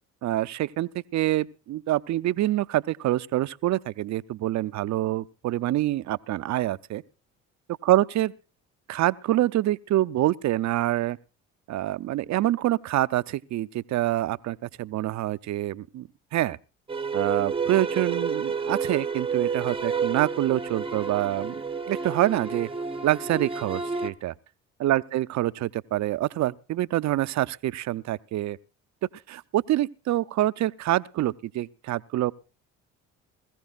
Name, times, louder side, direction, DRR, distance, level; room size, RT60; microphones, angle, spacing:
voice 1, 0.2-7.0 7.8-8.3 8.9-11.2 11.7-16.6 17.1-21.5 21.9-22.7 23.0-24.3 24.8-28.6 29.3-32.3, right 14 dB, 50° right, 0.5 m, -26 dB
sound 1, 16.9-24.1, right 5 dB, 15° right, 0.8 m, -30 dB
21.0 x 14.5 x 2.4 m
supercardioid pair, 65°, 36 cm